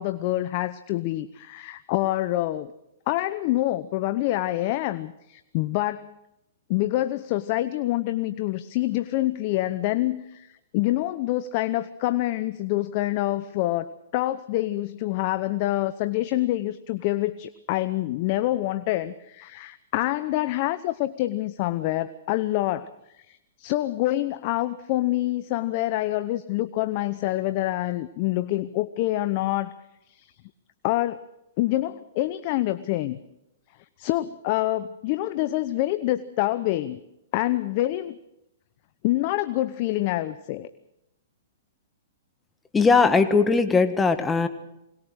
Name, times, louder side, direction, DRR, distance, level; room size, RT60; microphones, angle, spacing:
voice 1, 0.0-2.7 3.1-6.1 6.7-22.9 23.2-29.7 30.1-30.3 30.8-31.2 31.6-33.2 34.0-37.0 37.3-38.2 39.0-40.7, left 16 dB, 45° left, 13 dB, 0.8 m, -26 dB
voice 2, 42.7-44.5, left 4 dB, 15° left, 8 dB, 1.7 m, -19 dB
22.0 x 19.5 x 6.4 m, 0.86 s
hypercardioid pair, 120°, 0 cm